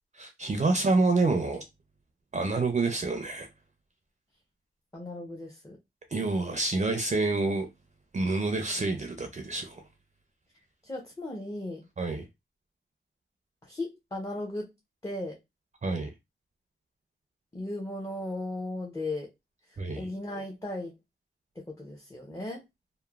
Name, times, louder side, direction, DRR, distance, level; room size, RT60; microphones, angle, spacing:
voice 1, 0.1-1.6 2.3-3.5 6.1-7.7 8.1-9.8 12.0-12.3 15.8-16.1 19.8-20.1, right 3 dB, 35° right, 0.4 m, -27 dB
voice 2, 4.9-5.8 10.8-11.8 13.6-14.7 15.0-15.4 17.5-19.3 19.7-21.0 21.6-22.6, left 2 dB, 15° left, 0.5 m, -36 dB
3.0 x 2.0 x 2.3 m
wide cardioid pair, 100°, 20 cm